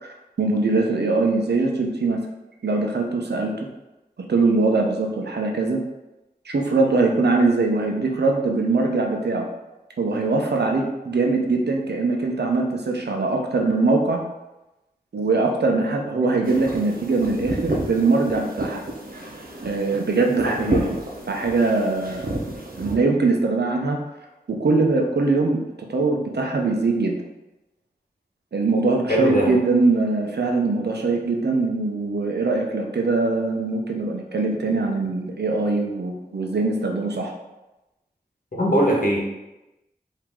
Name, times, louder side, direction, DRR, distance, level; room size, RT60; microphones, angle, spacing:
voice 1, 0.0-2.2 2.6-3.7 4.3-5.8 6.4-9.5 10.0-14.2 15.1-18.8 19.6-20.9 21.3-22.4 22.8-24.0 24.5-25.6 25.9-27.2 28.5-37.3, right 3 dB, 90° right, 1 dB, 0.7 m, -22 dB
sound 1, 16.4-22.9, right 1 dB, 60° right, 0.9 m, -30 dB
voice 2, 29.1-29.5 38.5-39.2, equal, 55° left, -3 dB, 1.3 m, -21 dB
4.9 x 2.8 x 3.6 m, 0.98 s
wide cardioid pair, 50°, 17 cm